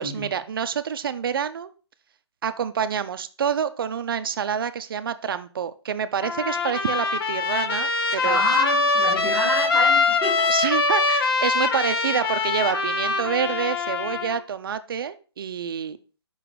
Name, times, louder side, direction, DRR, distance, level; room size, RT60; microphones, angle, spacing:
voice 1, 0.0-1.7 2.4-8.4 10.5-16.0, right 7 dB, 55° right, 11 dB, 0.6 m, -27 dB
Trumpet, 6.2-14.4, left 4 dB, 55° left, 0.9 m, -23 dB
voice 2, 8.2-10.5, left 1 dB, 10° left, -7 dB, 1.6 m, -27 dB
5.7 x 3.9 x 4.6 m, 0.35 s
hypercardioid pair, 160°, 14 cm